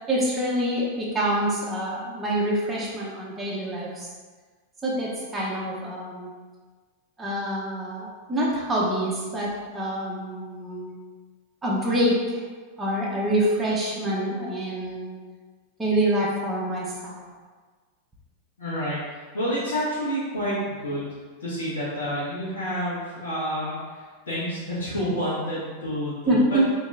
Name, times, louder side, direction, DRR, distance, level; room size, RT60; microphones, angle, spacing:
voice 1, 0.1-4.1 4.8-6.3 7.2-11.0 11.6-12.4 12.8-15.2 15.8-17.3 26.3-26.7, right 1 dB, 10° right, -7 dB, 0.9 m, -26 dB
voice 2, 18.6-21.1 21.4-26.6, equal, 65° left, -12 dB, 1.5 m, -29 dB
4.2 x 3.1 x 3.7 m, 1.4 s
figure-of-eight pair, 90°, 0 cm